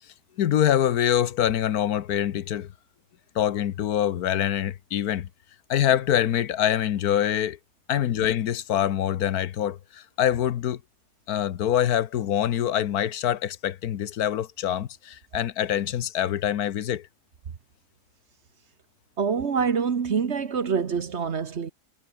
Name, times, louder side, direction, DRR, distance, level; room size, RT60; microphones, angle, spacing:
voice 1, 0.4-2.7 3.3-5.3 5.7-7.6 7.9-10.8 11.3-17.1, left 10 dB, 75° left, 1.4 m, -25 dB
voice 2, 19.2-21.7, right 6 dB, 50° right, 1.4 m, -25 dB
omnidirectional pair, 1.6 m